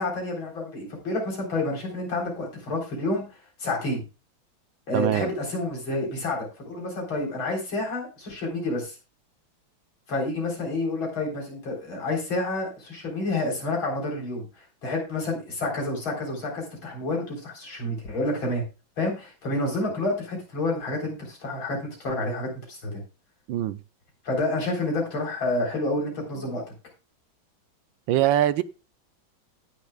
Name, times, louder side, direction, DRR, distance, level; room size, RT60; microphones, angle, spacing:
voice 1, 0.0-3.2 3.6-4.0 4.9-9.0 10.1-14.4 14.8-18.6 19.0-23.0 24.2-26.6, left 2 dB, 85° left, 4.7 m, -29 dB
voice 2, 4.9-5.3 23.5-23.8 28.1-28.6, right 12 dB, 80° right, 1.4 m, -22 dB
18.5 x 6.6 x 2.3 m
omnidirectional pair, 2.1 m